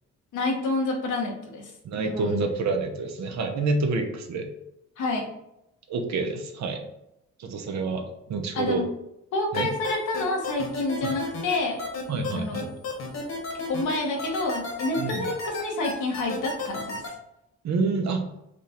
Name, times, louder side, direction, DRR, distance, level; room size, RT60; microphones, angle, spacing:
voice 1, 0.3-1.7 2.0-2.5 5.0-5.3 8.5-8.8 9.3-11.8 12.3-12.7 13.7-17.0, left 2 dB, 80° left, 1 dB, 1.3 m, -28 dB
voice 2, 1.8-4.5 5.9-6.8 7.4-8.8 9.5-9.7 11.0-11.1 12.1-12.7 15.0-15.3 17.6-18.3, right 3 dB, 65° right, 4 dB, 0.9 m, -28 dB
sound 1, 9.5-17.1, left 4 dB, 60° left, 1.6 m, -33 dB
5.0 x 2.4 x 4.3 m, 0.84 s
cardioid pair, 90°, 30 cm